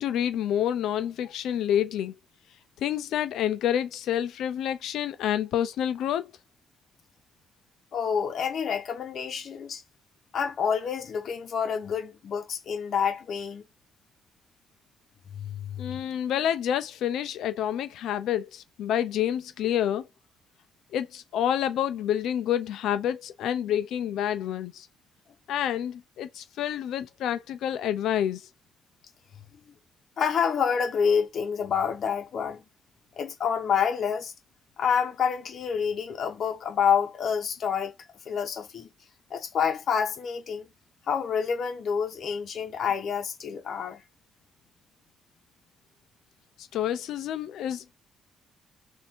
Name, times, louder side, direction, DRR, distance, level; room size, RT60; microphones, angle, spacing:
voice 1, 0.0-2.1 2.8-6.3 15.8-20.0 20.9-24.9 25.5-28.4 46.6-47.9, left 10 dB, 80° left, 0.6 m, -28 dB
voice 2, 7.9-9.8 10.3-13.6 15.3-16.0 30.2-32.6 33.2-34.3 34.8-37.9 38.3-38.9 39.3-40.7 41.1-44.0, left 7 dB, 60° left, 1.2 m, -28 dB
3.5 x 2.7 x 4.4 m
cardioid pair, 90°, 0 cm